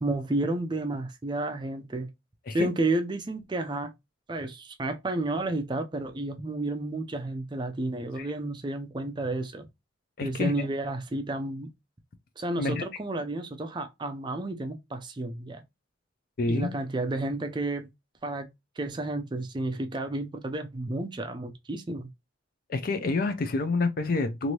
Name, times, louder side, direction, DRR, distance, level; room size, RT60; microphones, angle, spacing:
voice 1, 0.0-2.1 2.5-3.9 4.3-9.7 10.2-11.7 12.4-15.6 16.5-17.9 18.2-18.5 18.8-22.1, right 2 dB, 25° right, 0.4 m, -31 dB
voice 2, 10.2-10.7 12.6-12.8 16.4-16.7 22.7-24.5, left 3 dB, 45° left, 0.4 m, -28 dB
3.1 x 2.6 x 2.8 m
head